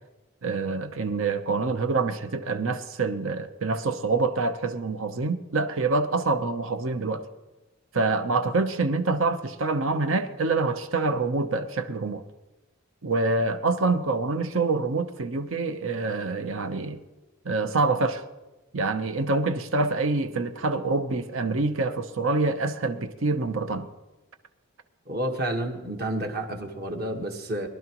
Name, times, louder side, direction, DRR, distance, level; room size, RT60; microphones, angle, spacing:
voice 1, 0.4-7.3 7.9-12.2 13.0-17.0 17.4-18.2 18.7-23.9, right 3 dB, 70° right, 0.8 m, -26 dB
voice 2, 25.1-27.7, right 1 dB, 50° right, 1.4 m, -30 dB
22.5 x 11.5 x 3.0 m
head